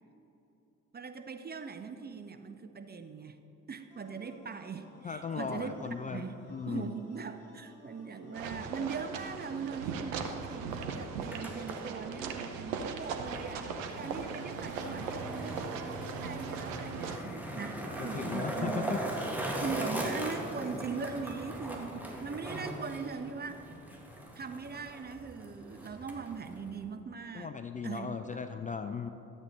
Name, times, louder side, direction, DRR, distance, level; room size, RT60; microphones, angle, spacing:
voice 1, 0.9-3.4 3.7-5.8 6.0-6.4 6.7-19.0 19.6-23.6 24.3-27.5 27.8-28.4, right 5 dB, 25° right, 8 dB, 0.6 m, -40 dB
sound 1, 3.9-9.9, left 1 dB, 65° left, 2.1 m, -58 dB
voice 2, 5.0-6.9 18.1-19.3 27.3-29.1, left 6 dB, 20° left, 8 dB, 0.4 m, -37 dB
sound 2, 8.3-17.2, right 5 dB, 75° right, 0.8 m, -39 dB
Skateboard, 11.3-26.8, right 1 dB, 5° right, 1.9 m, -40 dB
13.0 x 7.9 x 4.1 m, 3.0 s
figure-of-eight pair, 45°, 39 cm